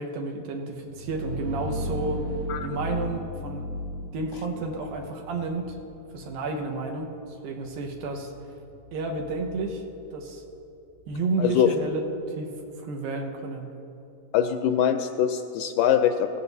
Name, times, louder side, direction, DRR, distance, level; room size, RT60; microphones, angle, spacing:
voice 1, 0.0-2.3 2.6-3.7 4.1-5.8 6.1-7.1 7.4-8.3 8.9-9.8 10.1-10.4 11.1-12.1 12.4-12.5 12.8-13.7, right 3 dB, 90° right, 3 dB, 2.9 m, -31 dB
sound 1, 0.8-12.3, equal, 70° right, 2.1 m, -38 dB
voice 2, 11.4-11.7 14.3-16.4, left 9 dB, 80° left, 7 dB, 1.9 m, -23 dB
19.0 x 15.5 x 2.7 m, 2.7 s
omnidirectional pair, 4.1 m